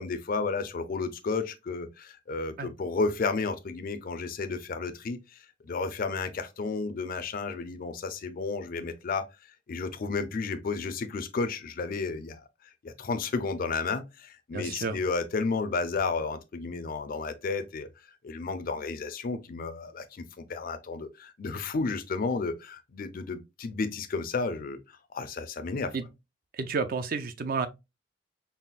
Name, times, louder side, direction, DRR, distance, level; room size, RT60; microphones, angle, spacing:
voice 1, 0.0-5.2 5.7-9.3 9.7-12.4 12.8-17.9 18.2-24.8 25.1-25.9, left 4 dB, 50° left, 0.4 m, -32 dB
voice 2, 14.5-15.0 25.9-26.0 26.5-27.7, right 4 dB, 50° right, 0.5 m, -30 dB
5.5 x 2.1 x 2.4 m
head